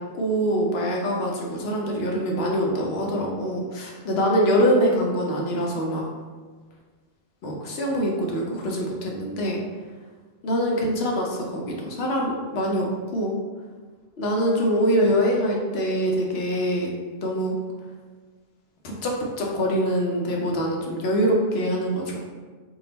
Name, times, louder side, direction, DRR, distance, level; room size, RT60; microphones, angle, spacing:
voice 1, 0.1-6.1 7.4-9.6 10.4-12.9 13.1-13.3 14.2-16.9 17.2-17.5 18.8-19.1 19.4-22.2, equal, 75° left, -1 dB, 0.9 m, -24 dB
3.8 x 2.3 x 3.8 m, 1.4 s
omnidirectional pair, 1.1 m